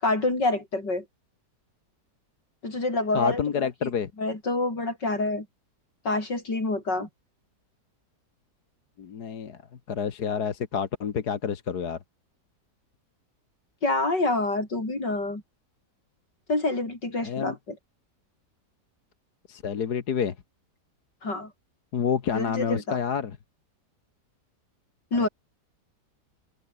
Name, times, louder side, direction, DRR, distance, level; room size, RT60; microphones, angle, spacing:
voice 1, 0.0-1.0 2.6-3.4 3.8-3.9 4.2-5.5 6.1-7.1 13.8-15.4 16.5-17.8 21.2-21.5 22.3-23.0 25.1-25.3, left 2 dB, 85° left, 7.3 m, -27 dB
voice 2, 3.1-4.1 9.0-9.6 9.9-12.0 17.2-17.5 19.5-20.3 21.9-23.4 25.1-25.3, left 7 dB, 65° left, 2.0 m, -28 dB
open air
omnidirectional pair, 1.8 m